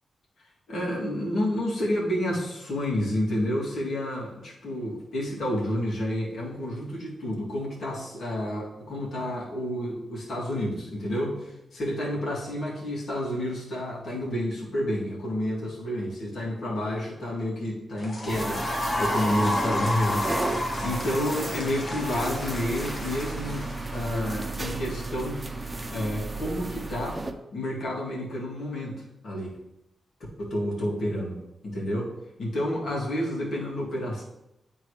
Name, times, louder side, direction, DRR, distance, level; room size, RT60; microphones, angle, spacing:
voice 1, 0.7-27.2 27.5-29.5 30.4-31.4 31.6-32.1 32.4-34.2, left 1 dB, 75° left, -4 dB, 2.2 m, -30 dB
sound 1, 18.0-24.3, left 1 dB, 50° left, 1.2 m, -31 dB
sound 2, 18.3-27.3, right 2 dB, 25° right, 0.8 m, -34 dB
9.4 x 3.7 x 3.3 m, 0.89 s
cardioid pair, 65°, 0 cm